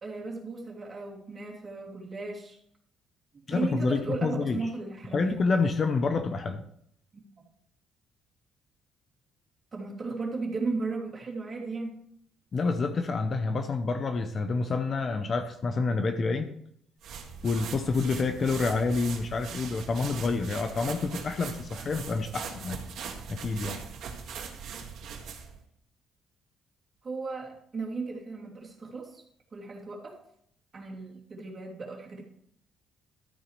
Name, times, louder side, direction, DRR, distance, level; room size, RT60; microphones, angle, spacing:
voice 1, 0.0-2.6 3.5-5.4 7.1-7.3 9.7-12.0 27.0-29.2 29.5-30.2 30.7-32.2, right 3 dB, 30° right, -2 dB, 2.9 m, -35 dB
voice 2, 3.5-4.6 5.1-6.6 12.5-16.5 17.4-22.8 23.3-23.8, left 4 dB, 35° left, 8 dB, 0.8 m, -28 dB
sound 1, 17.0-25.6, right 6 dB, 65° right, 1.9 m, -40 dB
13.0 x 9.1 x 3.3 m, 0.69 s
cardioid pair, 135°, 0 cm